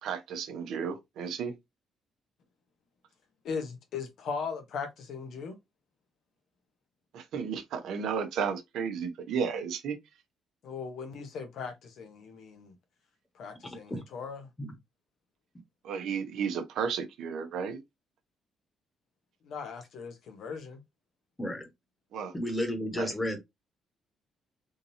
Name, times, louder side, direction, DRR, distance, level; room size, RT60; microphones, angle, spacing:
voice 1, 0.0-1.6 7.1-10.0 15.8-17.8 22.1-22.3 22.9-23.1, right 6 dB, 80° right, 0.7 m, -33 dB
voice 2, 3.4-5.6 10.6-12.7 13.3-14.5 19.4-20.8, left 5 dB, 75° left, 1.0 m, -38 dB
voice 3, 22.3-23.4, left 1 dB, 15° left, 1.4 m, -32 dB
3.7 x 2.7 x 2.7 m
cardioid pair, 90°, 0 cm